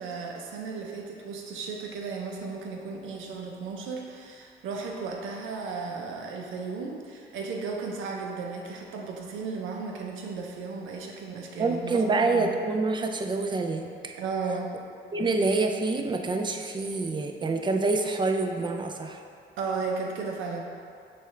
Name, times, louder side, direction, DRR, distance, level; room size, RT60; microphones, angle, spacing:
voice 1, 0.0-12.6 14.2-14.8 19.6-20.6, right 4 dB, 85° right, 1 dB, 0.6 m, -35 dB
voice 2, 11.6-14.1 15.1-19.2, right 3 dB, 25° right, 4 dB, 0.4 m, -27 dB
6.7 x 2.4 x 3.2 m, 2.4 s
cardioid pair, 90°, 20 cm